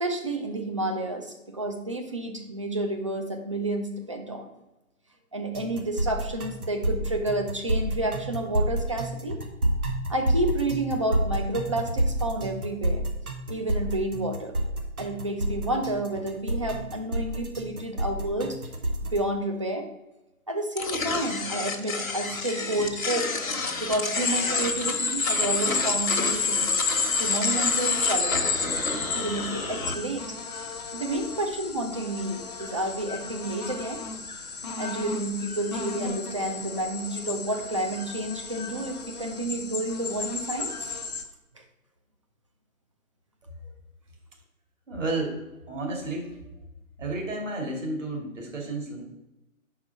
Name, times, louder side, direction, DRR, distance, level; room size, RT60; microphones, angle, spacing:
voice 1, 0.0-4.5 5.3-9.4 10.1-13.1 13.5-14.5 15.0-18.5 19.1-19.9 20.5-23.3 23.8-26.6 27.2-28.7 29.1-30.3 30.9-34.0 34.8-41.0, right 1 dB, 25° right, 4 dB, 0.5 m, -30 dB
sound 1, 5.5-19.2, right 1 dB, 85° right, 1.2 m, -28 dB
sound 2, 20.8-29.9, left 3 dB, 65° left, 1.2 m, -31 dB
sound 3, 24.1-41.2, left 4 dB, 30° left, 0.6 m, -31 dB
voice 2, 44.9-45.4 45.7-46.4 47.0-49.0, right 2 dB, 60° right, 0 dB, 2.3 m, -31 dB
5.8 x 4.8 x 5.3 m, 0.96 s
figure-of-eight pair, 135°, 43 cm